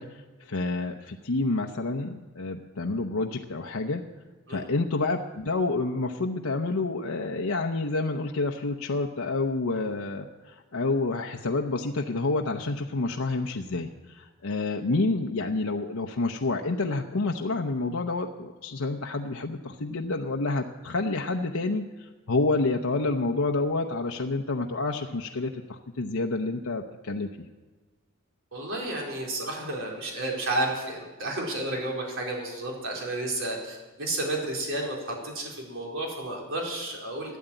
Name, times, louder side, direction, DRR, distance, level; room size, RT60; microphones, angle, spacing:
voice 1, 0.0-4.0 4.5-27.3, left 3 dB, 75° left, 2 dB, 0.8 m, -29 dB
voice 2, 28.5-37.4, right 2 dB, 65° right, -1 dB, 4.2 m, -31 dB
13.0 x 11.0 x 9.0 m, 1.3 s
head